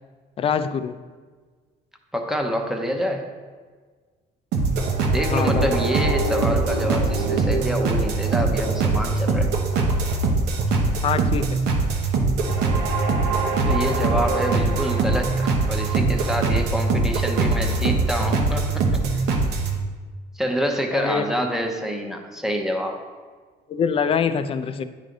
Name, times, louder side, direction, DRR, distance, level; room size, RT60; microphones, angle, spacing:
voice 1, 0.4-0.9 5.3-5.7 11.0-11.6 20.9-21.5 23.7-24.8, left 7 dB, 35° left, 12 dB, 0.4 m, -24 dB
voice 2, 2.1-3.3 5.1-9.5 13.6-19.2 20.3-23.0, equal, ahead, 2 dB, 0.8 m, -27 dB
sound 1, 4.5-19.8, right 3 dB, 85° right, 0.9 m, -22 dB
9.6 x 3.3 x 3.8 m, 1.5 s
cardioid pair, 110°, 17 cm